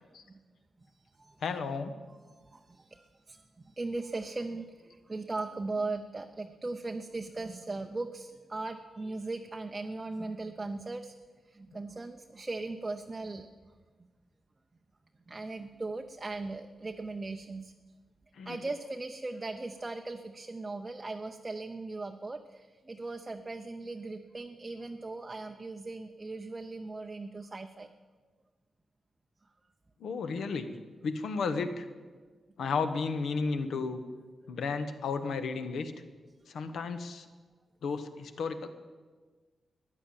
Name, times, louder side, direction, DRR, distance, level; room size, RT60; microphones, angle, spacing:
voice 1, 0.8-1.4 2.2-11.1 11.5-13.5 15.3-17.7 18.5-27.9, right 3 dB, 20° right, 5 dB, 0.6 m, -38 dB
voice 2, 1.4-1.9 18.3-18.6 30.0-30.7 31.0-31.9 32.6-34.0 34.5-35.9 36.5-37.3 37.8-38.7, left 4 dB, 75° left, 9 dB, 1.2 m, -33 dB
15.0 x 10.0 x 8.8 m, 1.4 s
wide cardioid pair, 165°, 0 cm